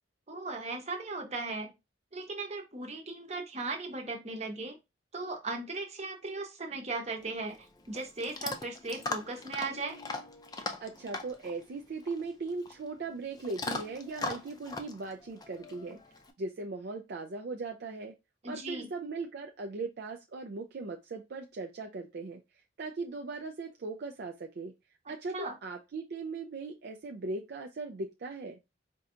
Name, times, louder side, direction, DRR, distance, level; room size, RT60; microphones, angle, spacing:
voice 1, 0.3-1.7 2.1-4.8 5.1-10.0 18.4-18.9 25.3-25.6, right 3 dB, 35° right, 3 dB, 0.9 m, -37 dB
Chewing mastication / Dog, 7.2-16.3, left 3 dB, 20° left, 0.5 m, -41 dB
voice 2, 10.8-16.0 16.4-18.1 18.4-22.4 22.8-24.7 25.1-28.6, right 3 dB, 55° right, 3 dB, 0.4 m, -39 dB
4.5 x 2.7 x 2.5 m, 0.23 s
head